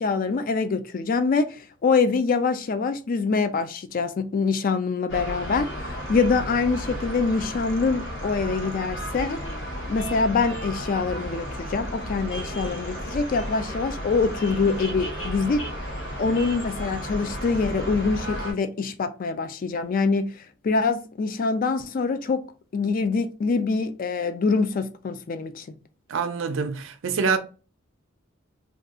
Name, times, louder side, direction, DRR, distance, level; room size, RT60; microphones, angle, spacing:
voice 1, 0.0-9.4 9.9-15.7 16.2-22.4 22.7-25.7, left 4 dB, 40° left, 0.3 m, -25 dB
sound 1, 5.1-18.5, equal, 60° left, 0.9 m, -33 dB
voice 2, 26.1-27.4, right 5 dB, 65° right, 0.4 m, -25 dB
2.6 x 2.3 x 3.5 m
head